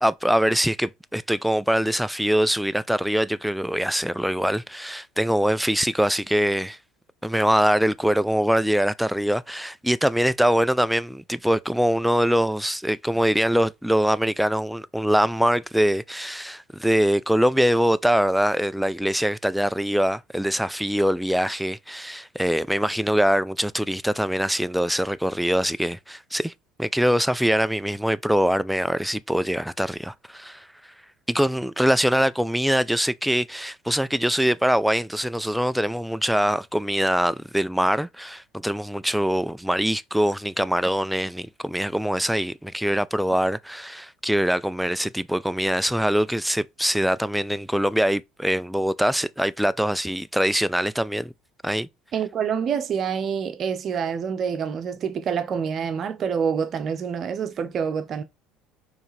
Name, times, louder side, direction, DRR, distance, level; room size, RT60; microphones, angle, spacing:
voice 1, 0.0-6.8 7.2-26.5 26.8-30.7 31.3-51.3 51.6-51.9, equal, ahead, 0.3 m, -23 dB
voice 2, 52.1-58.2, right 7 dB, 45° right, 0.7 m, -27 dB
4.5 x 3.3 x 3.2 m
hypercardioid pair, 80°, 0 cm